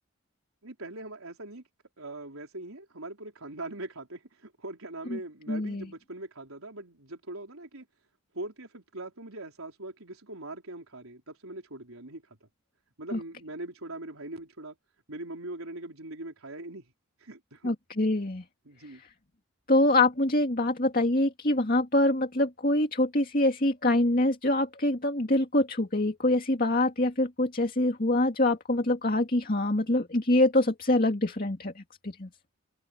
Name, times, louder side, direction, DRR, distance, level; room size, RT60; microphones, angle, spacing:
voice 1, 0.6-1.6 2.0-7.9 8.3-12.5 13.0-14.8 15.1-16.8 17.2-17.7 18.6-19.0, right 2 dB, 80° right, 4.3 m, -41 dB
voice 2, 5.5-5.9 13.1-13.2 17.6-18.4 19.7-32.3, left 1 dB, 40° left, 2.3 m, -25 dB
head